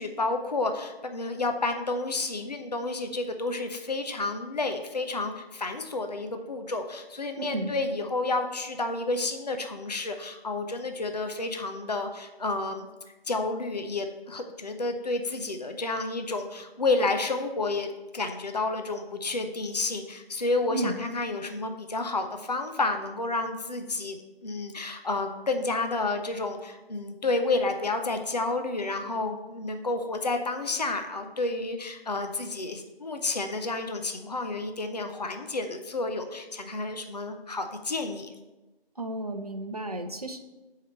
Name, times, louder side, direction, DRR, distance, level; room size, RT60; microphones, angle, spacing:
voice 1, 0.0-12.9 13.3-17.9 18.1-38.3, left 3 dB, 45° left, 6 dB, 0.6 m, -30 dB
voice 2, 7.4-7.8 20.7-21.0 39.0-40.4, right 2 dB, 40° right, 6 dB, 0.7 m, -32 dB
7.2 x 4.9 x 5.6 m, 1.1 s
figure-of-eight pair, 160°, 30 cm